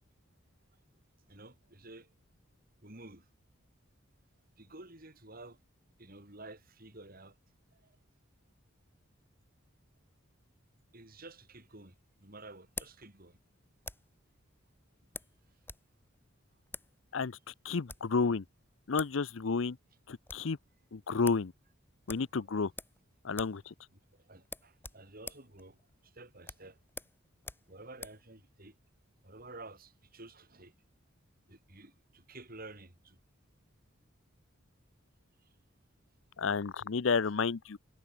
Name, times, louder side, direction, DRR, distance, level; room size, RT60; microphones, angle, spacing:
voice 1, 1.3-2.1 2.8-3.2 4.6-5.6 6.0-7.3 7.7-8.0 10.9-11.9 12.2-13.4 24.1-25.8 26.0-26.8 27.7-28.8 29.2-30.7 31.5-33.2, right 2 dB, 45° right, 5.0 m, -51 dB
sound 1, 11.3-14.2 15.1-16.2 16.7-16.9 17.7-18.2 18.7-18.8 19.0-19.2 19.5-19.6 19.9-20.5 20.9-21.0 21.2-21.5 22.1-23.0 23.3-23.6 23.9-24.0 24.4-28.2, left 3 dB, 10° left, 2.5 m, -47 dB
voice 2, 17.1-18.4 18.9-19.8 20.1-20.6 20.9-21.5 22.1-22.7 23.2-23.7 36.4-37.8, left 4 dB, 70° left, 0.6 m, -31 dB
head